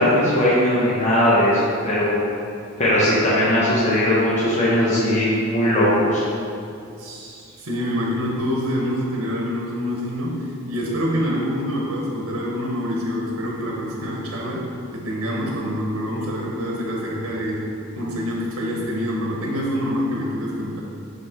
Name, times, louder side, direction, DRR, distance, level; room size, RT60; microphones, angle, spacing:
voice 1, 0.0-2.2 2.8-6.2, left 1 dB, 35° left, -8 dB, 1.1 m, -19 dB
voice 2, 7.0-14.6 14.9-20.8, equal, 90° right, -2 dB, 1.0 m, -26 dB
6.3 x 5.3 x 3.6 m, 2.5 s
head